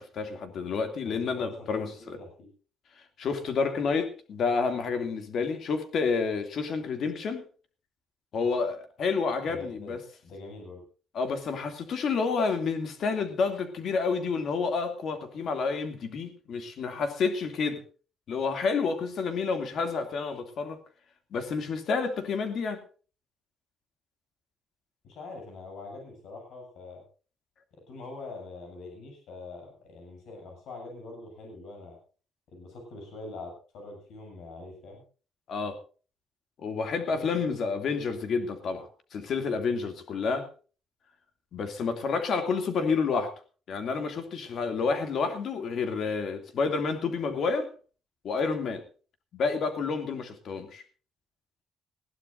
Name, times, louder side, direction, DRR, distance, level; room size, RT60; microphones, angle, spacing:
voice 1, 0.0-2.2 3.2-7.4 8.3-10.0 11.1-17.8 18.3-20.8 21.3-22.8 35.5-35.8 36.6-40.5 41.5-43.3 43.7-47.7 48.2-48.8 49.3-50.8, left 5 dB, 50° left, 7 dB, 2.6 m, -29 dB
voice 2, 1.1-2.5 9.4-10.0 10.2-10.8 25.0-27.0 27.7-32.0 32.5-35.0 37.1-37.5, left 2 dB, 70° left, 1 dB, 7.7 m, -44 dB
20.5 x 15.5 x 2.6 m, 0.37 s
cardioid pair, 180°, 0 cm